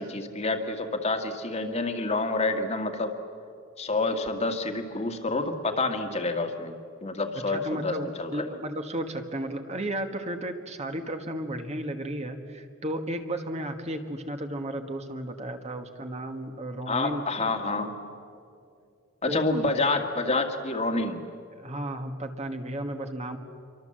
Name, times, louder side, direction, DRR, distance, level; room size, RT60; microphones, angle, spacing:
voice 1, 0.0-3.1 3.8-8.5 16.9-17.9 19.2-21.2, left 3 dB, 30° left, 5 dB, 1.8 m, -28 dB
voice 2, 7.5-17.2 19.3-19.4 19.9-20.0 21.5-23.4, right 1 dB, 30° right, 6 dB, 1.5 m, -34 dB
27.0 x 24.0 x 7.7 m, 2.4 s
head